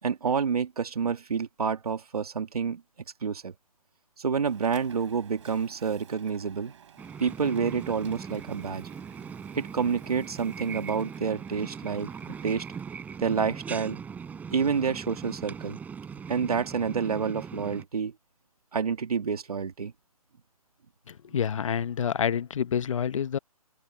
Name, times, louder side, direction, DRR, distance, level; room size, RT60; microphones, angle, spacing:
voice 1, 0.0-2.8 3.2-3.5 4.2-6.7 7.2-8.9 9.5-12.1 12.4-12.7 13.2-14.0 14.5-15.8 16.3-18.1 18.7-19.9, right 6 dB, 75° right, 2.4 m, -28 dB
Printer, 4.4-15.7, right 8 dB, 50° right, 7.0 m, -54 dB
sound 1, 7.0-17.8, right 6 dB, 10° right, 5.1 m, -40 dB
voice 2, 21.1-23.4, left 8 dB, 55° left, 1.1 m, -28 dB
open air
hypercardioid pair, 155°, 19 cm